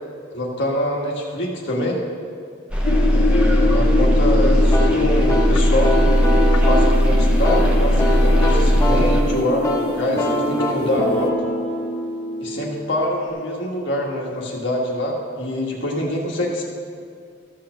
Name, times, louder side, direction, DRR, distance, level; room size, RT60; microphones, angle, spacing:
voice 1, 0.3-2.0 3.1-6.2 6.7-11.3 12.4-16.6, left 1 dB, 55° left, -2 dB, 1.7 m, -25 dB
sound 1, 2.7-9.2, equal, 5° right, 1.0 m, -17 dB
sound 2, 2.8-11.3, left 3 dB, 80° left, 0.8 m, -25 dB
sound 3, 4.7-13.3, equal, 15° left, 1.2 m, -25 dB
13.5 x 5.8 x 6.3 m, 2.2 s
head